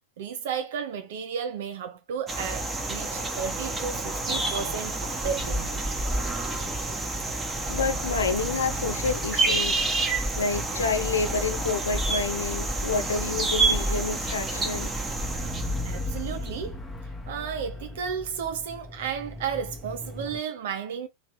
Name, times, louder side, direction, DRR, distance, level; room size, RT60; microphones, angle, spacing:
voice 1, 0.2-5.8 15.8-16.8 17.3-21.1, right 7 dB, 55° right, 0.6 m, -33 dB
sound 1, 2.3-16.5, right 2 dB, 15° right, 1.1 m, -29 dB
sound 2, 4.0-20.4, left 2 dB, 10° left, 1.0 m, -39 dB
voice 2, 7.7-9.8 10.4-15.0, left 4 dB, 70° left, 0.6 m, -29 dB
3.3 x 2.5 x 3.0 m
figure-of-eight pair, 90°, 0 cm